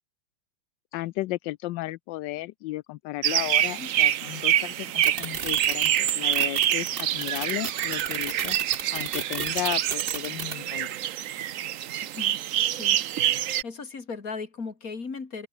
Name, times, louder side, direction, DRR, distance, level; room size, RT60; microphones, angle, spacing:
voice 1, 0.9-8.6 8.9-11.0, left 17 dB, 75° left, 1.1 m, -34 dB
sound 1, 3.2-13.6, right 12 dB, 90° right, 0.7 m, -26 dB
sound 2, 5.0-10.5, right 5 dB, 35° right, 1.2 m, -32 dB
voice 2, 12.7-13.0 13.6-15.5, left 4 dB, 45° left, 3.1 m, -37 dB
omnidirectional pair, 2.2 m